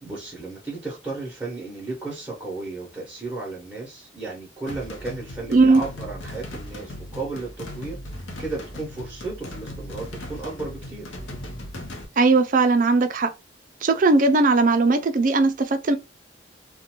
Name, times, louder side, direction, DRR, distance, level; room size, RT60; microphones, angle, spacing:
voice 1, 0.0-8.0 8.4-11.1, right 3 dB, 10° right, 0.7 m, -34 dB
sound 1, 4.7-12.0, left 1 dB, 75° left, 0.7 m, -38 dB
voice 2, 12.2-13.3 13.8-16.0, right 3 dB, 40° right, 0.4 m, -18 dB
2.4 x 2.2 x 2.9 m
head